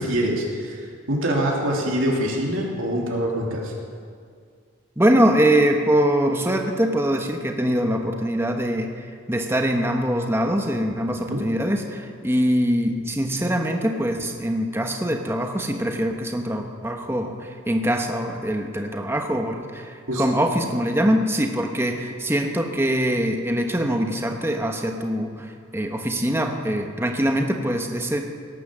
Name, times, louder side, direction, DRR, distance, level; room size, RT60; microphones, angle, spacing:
voice 1, 0.0-3.7 11.1-11.4 20.1-20.2, equal, 75° right, -2 dB, 3.0 m, -25 dB
voice 2, 5.0-8.9 9.3-28.2, equal, 10° right, 3 dB, 1.2 m, -23 dB
18.0 x 10.5 x 7.5 m, 2.1 s
head